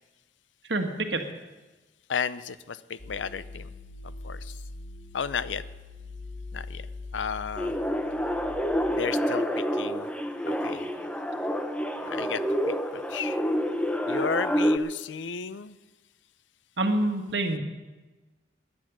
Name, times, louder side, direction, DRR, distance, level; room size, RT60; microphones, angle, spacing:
voice 1, 0.7-1.2 16.8-17.6, right 2 dB, 70° right, 5 dB, 1.7 m, -26 dB
voice 2, 2.1-3.7 4.2-4.6 5.1-5.6 6.5-6.9 7.1-7.8 8.9-10.1 10.5-10.9 12.0-12.4 12.9-13.4 14.1-15.8, left 6 dB, 90° left, 16 dB, 0.6 m, -33 dB
sound 1, 3.0-8.6, left 3 dB, 60° left, 4.2 m, -42 dB
sound 2, 7.6-14.8, equal, 5° left, 0.7 m, -28 dB
17.5 x 10.5 x 6.1 m, 1.2 s
head